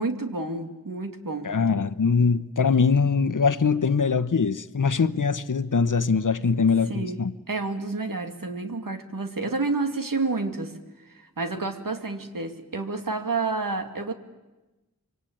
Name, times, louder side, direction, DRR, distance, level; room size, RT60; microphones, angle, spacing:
voice 1, 0.0-1.5 6.9-7.2 7.5-10.8 11.1-14.1, right 3 dB, 70° right, 2.5 m, -29 dB
voice 2, 1.4-7.4, left 5 dB, 60° left, 1.0 m, -22 dB
26.0 x 24.5 x 8.8 m
wide cardioid pair, 70°, 35 cm